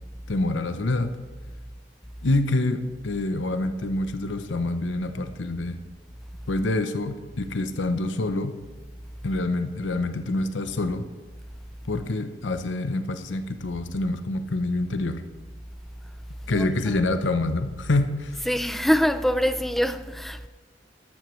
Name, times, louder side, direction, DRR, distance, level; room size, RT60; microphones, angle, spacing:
voice 1, 0.3-1.1 2.2-5.8 6.5-8.5 9.2-11.0 11.9-15.2 16.5-18.5, left 2 dB, 80° left, 0.8 m, -26 dB
voice 2, 16.5-17.1 18.4-20.5, equal, ahead, 0.4 m, -25 dB
14.0 x 11.5 x 3.2 m
head